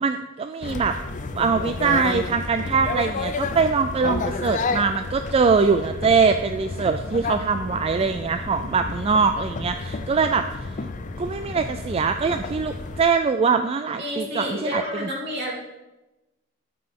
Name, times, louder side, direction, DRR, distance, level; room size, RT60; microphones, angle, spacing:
voice 1, 0.0-0.9 1.3-10.8 11.2-14.8, right 5 dB, 30° right, 8 dB, 0.3 m, -22 dB
sound 1, 0.6-13.0, left 3 dB, 40° left, 0.5 m, -31 dB
voice 2, 14.0-15.5, equal, 55° right, -4 dB, 2.8 m, -29 dB
13.0 x 5.3 x 3.6 m, 1.1 s
head